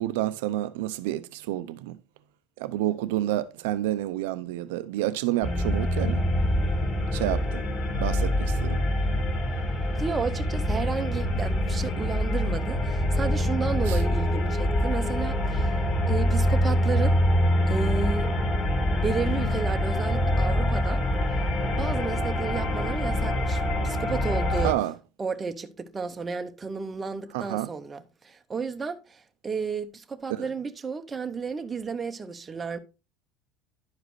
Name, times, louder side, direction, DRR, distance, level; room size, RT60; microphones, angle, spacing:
voice 1, 0.0-2.0 2.6-6.2 7.1-7.6 8.0-8.8 13.9-14.0 24.6-24.9 27.3-27.7 30.3-30.5, right 14 dB, 90° right, 0.5 m, -29 dB
sound 1, 5.4-24.7, left 1 dB, 35° left, 2.0 m, -25 dB
voice 2, 9.9-15.8 16.1-17.2 17.7-18.3 18.8-21.0 21.8-24.8 25.2-32.8, right 5 dB, 20° right, 0.6 m, -32 dB
11.0 x 4.9 x 3.1 m
cardioid pair, 140°, 0 cm